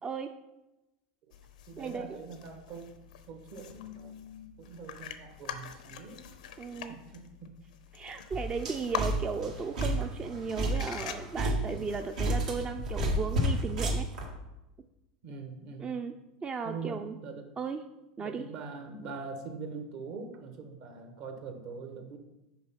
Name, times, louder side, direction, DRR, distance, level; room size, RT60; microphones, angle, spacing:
voice 1, 0.0-0.3 1.8-2.2 6.6-7.0 7.9-14.1 15.8-16.1 16.4-17.1 17.6-17.8 18.2-18.5, right 5 dB, 25° right, 6 dB, 0.4 m, -36 dB
sound 1, 1.3-12.4, left 8 dB, 85° left, 0.7 m, -45 dB
voice 2, 1.7-2.9 3.3-6.2 6.9-7.5 15.2-16.0 16.6-17.5 18.2-22.2, right 4 dB, 60° right, 5 dB, 1.5 m, -43 dB
sound 2, 8.3-14.3, right 1 dB, 85° right, 1.8 m, -31 dB
6.6 x 4.5 x 5.7 m, 0.97 s
hypercardioid pair, 100°, 4 cm